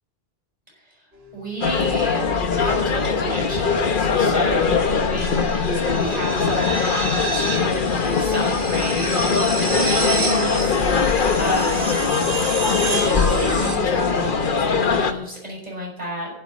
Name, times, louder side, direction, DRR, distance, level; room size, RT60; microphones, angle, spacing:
sound 1, 1.1-1.6 3.7-13.8, right 2 dB, 65° right, 1.9 m, -29 dB
voice 1, 1.3-2.3 2.5-9.1 9.6-12.3 12.9-16.3, equal, 35° right, -2 dB, 6.2 m, -32 dB
sound 2, 1.6-15.1, left 5 dB, 50° left, 1.1 m, -21 dB
12.0 x 8.0 x 9.9 m, 0.89 s
omnidirectional pair, 1.1 m